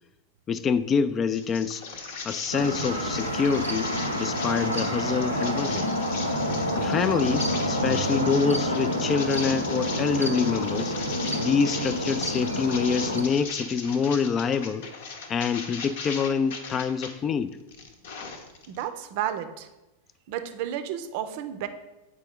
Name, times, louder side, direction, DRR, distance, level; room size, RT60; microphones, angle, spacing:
voice 1, 0.5-1.8 2.2-5.9 6.7-10.9 11.3-14.8 15.3-17.5, left 6 dB, 25° left, 14 dB, 0.3 m, -26 dB
sound 1, 1.3-17.1 17.5-18.8, left 4 dB, 55° left, 0.8 m, -38 dB
sound 2, 2.5-13.2, equal, 90° left, 0.6 m, -28 dB
voice 2, 18.7-19.7 20.3-21.7, right 10 dB, 45° right, 10 dB, 0.5 m, -32 dB
7.5 x 4.8 x 3.6 m, 1.0 s
figure-of-eight pair, 90°, 0 cm